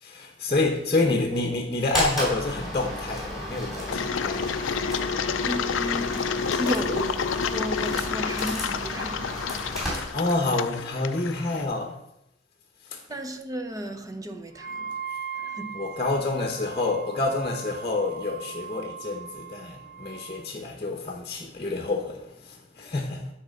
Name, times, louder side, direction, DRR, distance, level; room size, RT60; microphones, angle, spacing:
voice 1, 0.0-4.8 9.7-12.0 12.8-13.0 15.7-23.3, left 2 dB, 30° left, 0.9 m, -28 dB
voice 2, 0.8-1.2 5.4-9.3 13.1-15.0 15.3-15.8, equal, 20° right, 0.7 m, -34 dB
sound 1, 1.9-10.6, equal, ahead, 3.1 m, -33 dB
Engine, 3.9-11.6, left 6 dB, 75° left, 0.4 m, -29 dB
Wind instrument woodwind instrument, 14.5-20.4, right 7 dB, 50° right, 0.8 m, -39 dB
9.9 x 4.3 x 6.4 m
head